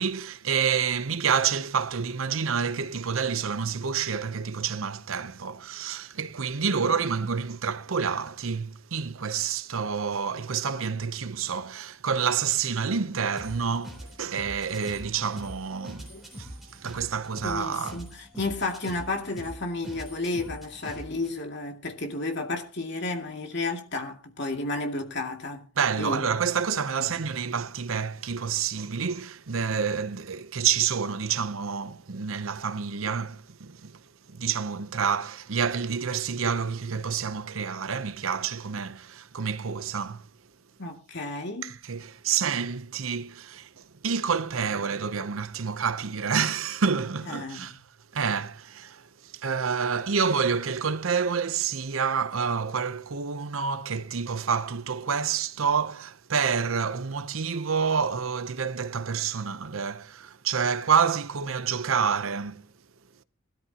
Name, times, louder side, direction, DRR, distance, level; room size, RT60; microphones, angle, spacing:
voice 1, 0.0-18.0 25.8-34.0 34.3-40.3 41.6-47.8 48.1-62.7, right 6 dB, 85° right, 0.8 m, -28 dB
sound 1, 13.3-21.3, equal, ahead, 3.6 m, -43 dB
voice 2, 17.4-25.7 26.0-26.3 27.0-27.1 40.8-41.8 47.3-47.7, left 2 dB, 55° left, 2.4 m, -32 dB
20.0 x 13.0 x 2.9 m
head